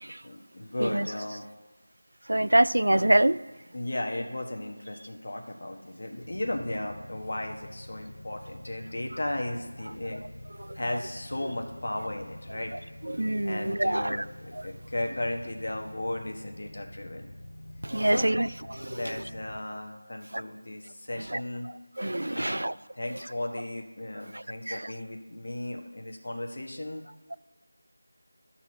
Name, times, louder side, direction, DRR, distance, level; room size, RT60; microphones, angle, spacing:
voice 1, 0.2-1.4 3.7-10.2 10.7-12.7 13.4-17.3 18.0-18.4 18.9-21.7 22.3-27.0, left 1 dB, 50° left, 1.3 m, -35 dB
voice 2, 2.3-3.4 10.6-10.8 13.1-14.2 17.8-19.1 21.2-21.4 22.0-22.7 24.3-24.8, right 1 dB, 85° right, 0.3 m, -25 dB
sound 1, 6.2-19.6, left 1 dB, 75° left, 0.8 m, -46 dB
12.5 x 4.3 x 6.2 m
figure-of-eight pair, 175°, 0 cm